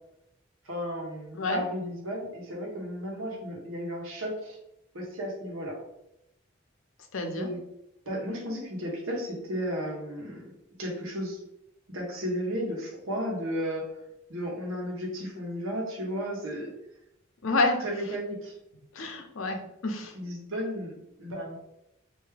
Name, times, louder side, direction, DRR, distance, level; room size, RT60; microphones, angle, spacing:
voice 1, 0.6-4.6 4.9-5.8 7.3-7.6 8.0-10.5 10.8-11.4 11.9-14.0 14.3-16.7 17.8-18.5 20.1-21.6, equal, 85° right, -1 dB, 1.1 m, -34 dB
voice 2, 7.1-7.5 17.4-17.8 18.9-20.2, left 2 dB, 85° left, 4 dB, 0.7 m, -29 dB
3.4 x 2.7 x 3.3 m, 0.83 s
head